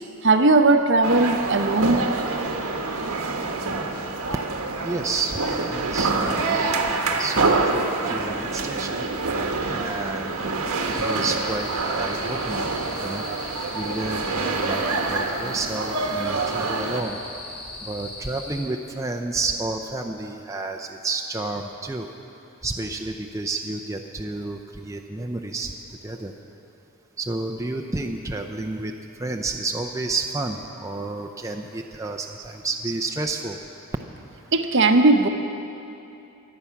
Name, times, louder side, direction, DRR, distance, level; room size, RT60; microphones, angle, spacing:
voice 1, 0.2-2.1 34.5-35.3, right 3 dB, 55° right, 6 dB, 0.9 m, -18 dB
sound 1, 1.0-17.0, right 3 dB, 85° right, 1.3 m, -26 dB
voice 2, 4.8-5.4 5.7-9.0 9.7-11.7 12.0-12.7 13.0-13.3 13.7-17.2 17.8-22.1 22.6-25.7 26.0-26.3 27.2-28.9 29.2-33.6, right 3 dB, 15° right, 3 dB, 0.5 m, -30 dB
sound 2, 10.8-18.6, left 2 dB, 30° left, 2.6 m, -39 dB
23.5 x 8.6 x 5.8 m, 2.8 s
head